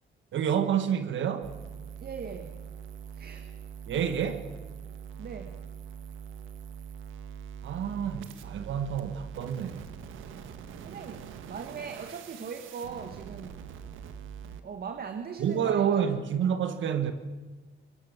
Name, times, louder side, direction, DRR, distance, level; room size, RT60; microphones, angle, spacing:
voice 1, 0.3-1.5 3.9-4.5 7.6-9.9 15.4-17.1, right 8 dB, 70° right, 1.7 m, -28 dB
sound 1, 1.4-14.6, right 7 dB, 90° right, 1.7 m, -43 dB
voice 2, 2.0-2.6 3.1-3.5 5.2-5.6 10.8-13.7 14.6-16.1, right 6 dB, 50° right, 1.8 m, -40 dB
25.0 x 17.5 x 7.4 m
cardioid pair, 90°, 20 cm